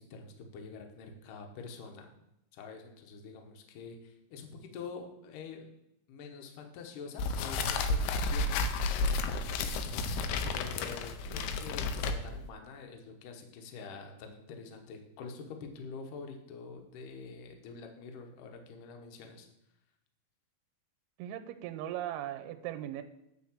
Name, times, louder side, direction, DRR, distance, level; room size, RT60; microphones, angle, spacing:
voice 1, 0.0-2.1 2.5-5.7 6.1-8.5 9.3-10.2 10.6-19.5, left 4 dB, 65° left, 3 dB, 2.3 m, -46 dB
sound 1, 7.2-12.5, left 3 dB, 90° left, 2.7 m, -32 dB
voice 2, 21.2-23.0, right 12 dB, 85° right, 9 dB, 2.5 m, -38 dB
9.2 x 4.5 x 7.2 m, 0.84 s
omnidirectional pair, 4.8 m